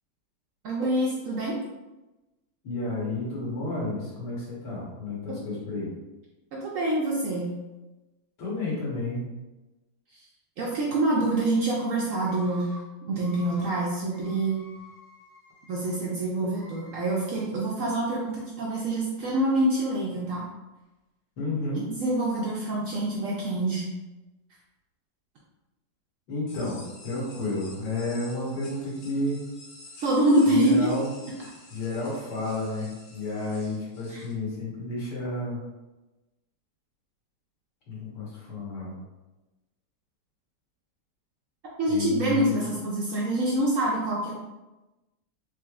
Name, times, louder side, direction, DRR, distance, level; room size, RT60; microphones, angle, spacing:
voice 1, 0.6-1.6 6.5-7.5 10.6-12.7 13.1-14.6 15.7-20.4 21.9-23.8 30.0-30.9 34.1-34.2 41.8-44.3, right 1 dB, 80° right, -4 dB, 0.7 m, -26 dB
voice 2, 2.6-5.9 8.4-9.3 21.4-21.8 26.3-29.4 30.5-31.1 31.7-35.6 37.9-39.0 41.9-42.5, left 2 dB, 70° left, -5 dB, 1.7 m, -31 dB
Screaming, 11.0-11.6 12.2-12.8 13.1-13.7 14.1-15.9 16.4-17.1, left 1 dB, 35° left, 1.4 m, -50 dB
sound 1, 26.5-34.3, left 2 dB, 90° left, 1.6 m, -49 dB
3.8 x 3.1 x 2.4 m, 1.1 s
omnidirectional pair, 2.0 m